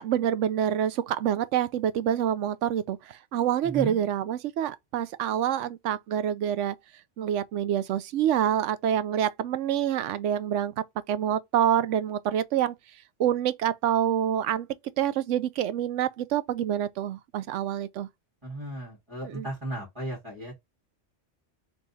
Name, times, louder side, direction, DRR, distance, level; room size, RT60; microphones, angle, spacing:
voice 1, 0.0-6.8 7.2-10.7 11.1-12.7 13.2-14.7 15.0-18.1 19.2-19.5, right 10 dB, 75° right, 0.9 m, -27 dB
voice 2, 3.6-4.0 18.4-20.6, right 2 dB, 25° right, 1.9 m, -35 dB
3.5 x 3.1 x 3.9 m
omnidirectional pair, 1.3 m